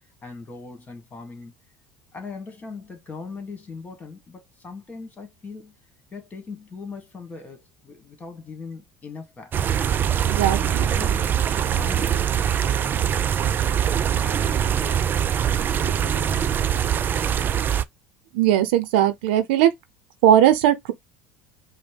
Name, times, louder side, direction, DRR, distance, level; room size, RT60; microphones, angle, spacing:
voice 1, 0.2-1.5 2.1-5.8 6.1-9.8 10.4-11.3 11.6-13.8 14.2-17.5, left 4 dB, 30° left, 2.0 m, -40 dB
sound 1, 9.5-17.8, right 9 dB, 35° right, 0.4 m, -23 dB
voice 2, 10.2-10.8 18.3-19.7 20.2-20.9, right 11 dB, 80° right, 0.7 m, -18 dB
5.2 x 2.2 x 3.4 m
hypercardioid pair, 85°, 6 cm